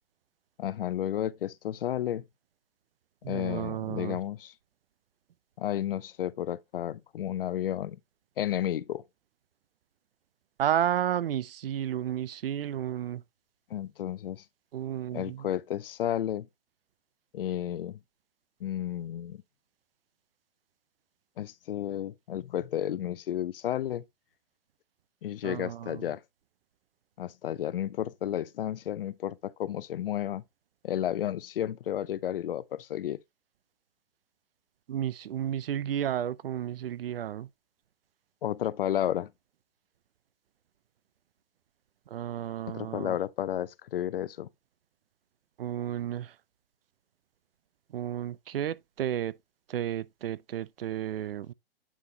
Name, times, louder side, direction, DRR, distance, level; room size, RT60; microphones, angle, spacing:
voice 1, 0.6-2.2 3.3-4.5 5.6-8.0 8.4-9.0 13.7-14.4 15.1-16.5 17.3-18.0 18.6-19.4 21.4-24.0 25.2-26.2 27.2-30.4 30.8-33.2 38.4-39.3 42.7-44.5, left 11 dB, 65° left, 0.6 m, -32 dB
voice 2, 3.2-4.2 10.6-13.2 14.7-15.5 25.4-26.1 34.9-37.5 42.1-43.2 45.6-46.3 47.9-49.3 49.7-51.5, right 11 dB, 70° right, 0.6 m, -32 dB
8.5 x 5.4 x 2.8 m
hypercardioid pair, 170°, 30 cm